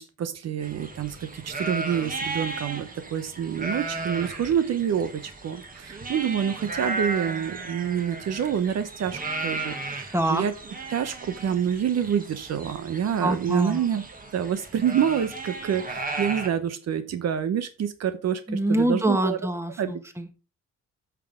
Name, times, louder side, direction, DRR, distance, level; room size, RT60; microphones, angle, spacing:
voice 1, 0.0-10.5 10.9-14.0 14.3-19.4 19.8-19.9, right 8 dB, 60° right, 11 dB, 0.9 m, -27 dB
sound 1, 0.6-16.5, right 3 dB, 30° right, 2.0 m, -35 dB
voice 2, 10.1-10.4 13.2-13.8 18.5-20.3, right 1 dB, 10° right, 7 dB, 1.5 m, -25 dB
8.4 x 6.1 x 3.7 m, 0.32 s
cardioid pair, 90°, 30 cm